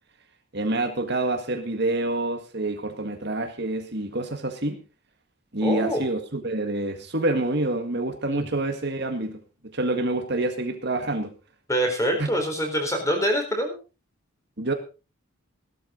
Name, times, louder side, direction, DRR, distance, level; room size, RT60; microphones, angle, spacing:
voice 1, 0.5-4.8 5.5-9.4 9.7-11.3 12.2-12.3 14.6-14.7, right 2 dB, 50° right, 6 dB, 1.9 m, -27 dB
voice 2, 5.6-6.0 8.3-8.5 11.7-13.8, equal, 15° left, 3 dB, 4.4 m, -25 dB
17.0 x 12.5 x 3.9 m, 0.32 s
head